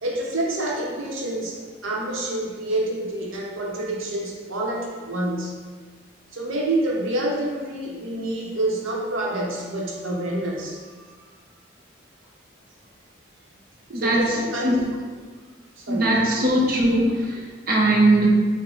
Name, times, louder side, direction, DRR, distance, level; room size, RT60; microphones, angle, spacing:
voice 1, 0.0-5.6 6.3-11.0 13.9-15.0 15.8-16.5, right 1 dB, 85° right, -1 dB, 0.8 m, -28 dB
voice 2, 13.9-14.4 14.6-14.8 15.9-18.3, right 1 dB, 50° right, -2 dB, 0.7 m, -20 dB
5.0 x 2.1 x 3.7 m, 1.5 s
head